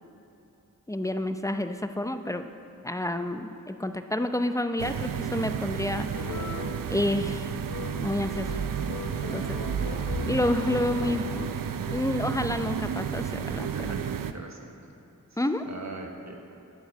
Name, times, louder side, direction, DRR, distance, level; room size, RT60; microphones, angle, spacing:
voice 1, 0.9-2.5 2.8-6.3 6.9-7.5 8.0-8.6 9.3-9.6 10.3-11.5 11.9-13.9 15.4-15.6, left 1 dB, 10° left, 8 dB, 0.6 m, -29 dB
sound 1, 4.8-14.3, right 8 dB, 75° right, 0.5 m, -32 dB
sound 2, 6.1-12.0, left 4 dB, 60° left, 0.9 m, -39 dB
voice 2, 13.7-14.9 15.3-16.3, right 2 dB, 55° right, 1 dB, 1.4 m, -42 dB
11.5 x 4.7 x 8.0 m, 3.0 s
cardioid pair, 45°, 33 cm